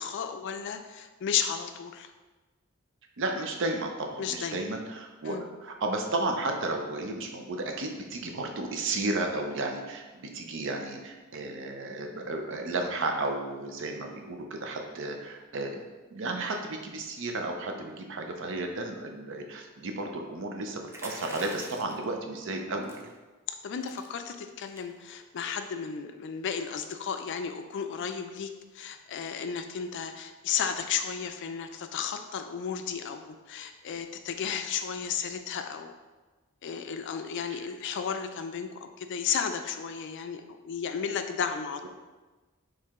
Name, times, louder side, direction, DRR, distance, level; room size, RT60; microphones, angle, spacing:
voice 1, 0.0-2.1 4.2-4.6 5.2-5.5 23.6-36.0 36.6-41.9, left 7 dB, 60° left, 7 dB, 0.4 m, -33 dB
voice 2, 3.2-5.4 5.6-23.1, right 2 dB, 60° right, 3 dB, 0.6 m, -33 dB
sound 1, 20.9-22.0 22.8-23.1 23.5-23.6 23.8-24.1 24.6-24.9, right 2 dB, 15° right, 0.5 m, -44 dB
4.6 x 3.1 x 3.6 m, 1.2 s
head